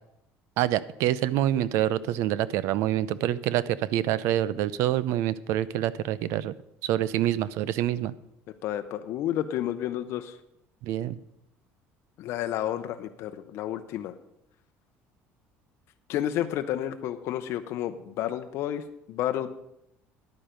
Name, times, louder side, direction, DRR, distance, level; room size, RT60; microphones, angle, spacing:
voice 1, 0.6-6.5 6.8-8.1 10.8-11.2, right 12 dB, 70° right, 18 dB, 0.5 m, -26 dB
voice 2, 8.6-10.4 12.2-14.1 16.1-19.5, left 11 dB, 55° left, 7 dB, 0.7 m, -31 dB
10.5 x 9.0 x 5.1 m, 0.80 s
cardioid pair, 145°, 5 cm